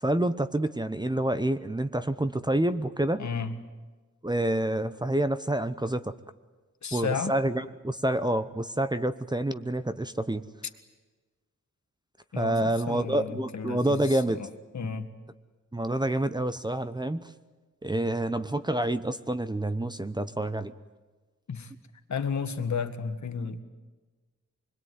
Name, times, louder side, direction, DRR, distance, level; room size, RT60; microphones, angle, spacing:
voice 1, 0.0-3.2 4.2-6.1 6.9-10.4 12.4-14.5 15.7-17.3 17.8-20.7, right 1 dB, 15° right, 12 dB, 0.8 m, -28 dB
voice 2, 3.2-3.5 6.8-7.3 12.3-14.5 14.7-15.1 21.5-21.7 22.1-23.6, left 6 dB, 65° left, 8 dB, 1.9 m, -33 dB
25.5 x 21.5 x 9.5 m, 1.3 s
wide cardioid pair, 110°, 31 cm